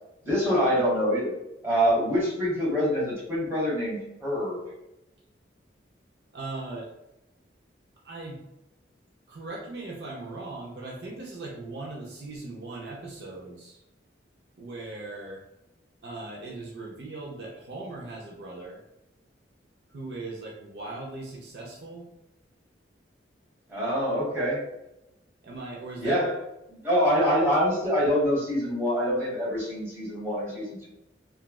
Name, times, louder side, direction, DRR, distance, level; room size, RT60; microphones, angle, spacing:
voice 1, 0.2-1.3 1.6-4.6 23.7-24.6 26.0-26.3 26.7-30.9, equal, 15° right, -7 dB, 1.0 m, -25 dB
voice 2, 6.3-6.9 8.0-8.4 9.3-13.8 14.6-15.4 16.0-18.8 19.9-22.1 25.4-26.2, right 2 dB, 60° right, -2 dB, 0.5 m, -39 dB
3.1 x 2.4 x 2.3 m, 0.89 s
head